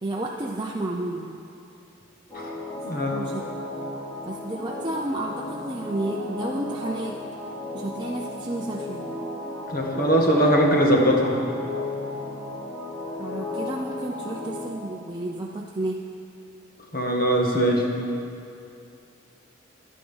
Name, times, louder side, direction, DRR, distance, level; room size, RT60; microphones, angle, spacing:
voice 1, 0.0-1.4 3.1-3.6 4.3-7.2 7.7-9.0 13.2-16.0, right 1 dB, 20° right, -2 dB, 0.6 m, -31 dB
sound 1, 2.3-14.7, left 2 dB, 10° left, 2.9 m, -34 dB
voice 2, 2.8-3.2 9.7-11.4 16.9-17.9, equal, 45° left, 0 dB, 1.7 m, -21 dB
10.5 x 10.5 x 7.1 m, 2.6 s
head